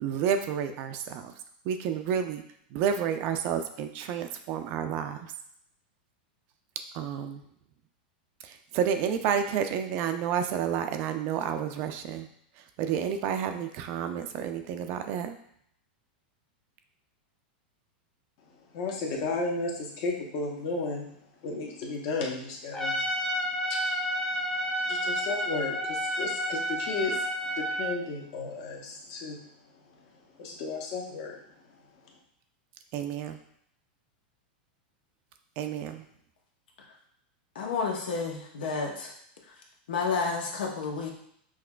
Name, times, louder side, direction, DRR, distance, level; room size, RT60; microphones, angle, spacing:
voice 1, 0.0-1.3 1.7-2.4 2.7-5.2 6.9-7.4 8.7-12.3 12.8-15.4 32.9-33.4 35.6-36.0, right 8 dB, 45° right, 7 dB, 0.4 m, -30 dB
voice 2, 18.7-21.0 21.4-23.0 23.7-23.8 24.9-29.4 30.4-31.4, left 3 dB, 50° left, 0 dB, 0.9 m, -33 dB
Trumpet, 22.7-28.0, equal, 10° left, 0.6 m, -30 dB
voice 3, 37.5-39.1 39.9-41.1, left 4 dB, 85° left, 1 dB, 0.9 m, -30 dB
5.9 x 2.4 x 2.2 m, 0.70 s
supercardioid pair, 140°, 5 cm